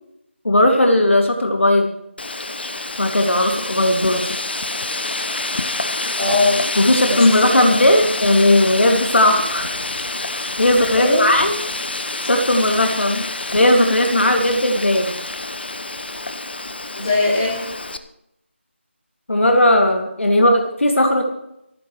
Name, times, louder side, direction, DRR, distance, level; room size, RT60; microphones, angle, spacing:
voice 1, 0.4-1.9 3.0-4.2 6.8-9.7 10.3-11.6 12.2-13.2 13.5-15.1 19.3-21.2, left 1 dB, 75° left, 3 dB, 2.5 m, -16 dB
Wind, 2.2-18.0, left 2 dB, 55° left, 1.1 m, -27 dB
voice 2, 6.2-6.6 7.0-7.8 11.0-11.2 17.0-17.6, left 2 dB, 20° left, -5 dB, 4.4 m, -20 dB
26.5 x 10.5 x 3.2 m, 0.81 s
figure-of-eight pair, 175°, 7 cm